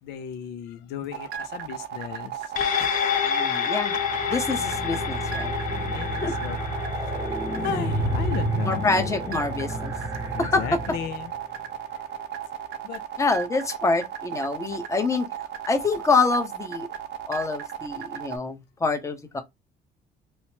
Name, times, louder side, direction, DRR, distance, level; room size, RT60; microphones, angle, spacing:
voice 1, 0.0-4.0 5.7-6.6 7.1-9.1 10.3-11.3 11.9-12.1 12.8-13.0, left 9 dB, 80° left, 0.5 m, -36 dB
sound 1, 1.1-18.4, right 10 dB, 75° right, 0.7 m, -35 dB
sound 2, 2.6-11.2 11.6-11.7, left 8 dB, 55° left, 0.8 m, -30 dB
voice 2, 3.3-3.9 4.3-5.5 6.2-6.3 8.6-9.9 10.4-10.8 13.2-15.3 15.7-16.9 17.3-19.4, left 3 dB, 15° left, 0.7 m, -26 dB
sound 3, 3.9-11.4, right 1 dB, 15° right, 0.7 m, -31 dB
3.0 x 2.1 x 2.7 m
cardioid pair, 110°, 17 cm